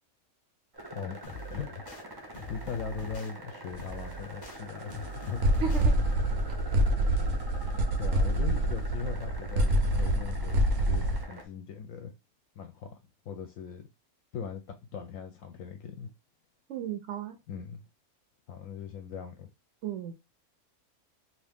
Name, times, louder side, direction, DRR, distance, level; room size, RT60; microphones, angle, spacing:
sound 1, 0.7-11.4, right 1 dB, 35° right, 0.4 m, -45 dB
voice 1, 0.9-1.8 2.1-5.4 8.0-12.1 12.6-13.0 13.3-13.8 14.3-14.6 14.9-16.1 17.5-17.8 18.5-19.5, left 6 dB, 70° left, 0.9 m, -40 dB
sound 2, 1.2-2.0 2.3-3.3 3.8-4.6 4.9-5.9, left 1 dB, 50° left, 0.5 m, -43 dB
sound 3, 3.7-4.0 4.5-4.6 4.9-5.0 5.4-11.2, right 1 dB, 85° right, 1.1 m, -26 dB
voice 2, 5.6-6.0 16.7-17.4 19.8-20.1, right 7 dB, 65° right, 0.8 m, -34 dB
2.8 x 2.7 x 3.5 m
omnidirectional pair, 1.5 m